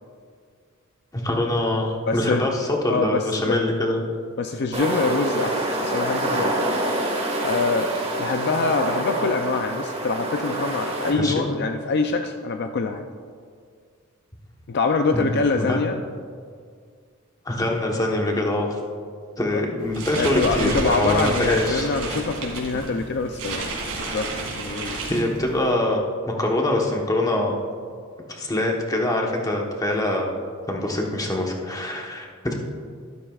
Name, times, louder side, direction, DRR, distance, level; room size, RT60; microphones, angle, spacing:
voice 1, 1.1-4.1 11.1-11.5 15.1-15.9 17.4-18.8 19.4-21.9 24.8-26.0 26.4-27.6 28.3-30.3 30.7-32.5, left 1 dB, 15° left, 0 dB, 1.1 m, -24 dB
voice 2, 2.1-2.5 2.9-3.6 4.4-6.6 7.4-13.1 14.7-16.0 20.2-25.0, left 4 dB, 50° left, 6 dB, 0.4 m, -25 dB
sound 1, 4.7-11.1, right 1 dB, 30° right, 1.7 m, -26 dB
sound 2, 19.8-25.7, right 2 dB, 85° right, 2.5 m, -31 dB
12.5 x 12.5 x 2.4 m, 2.1 s
head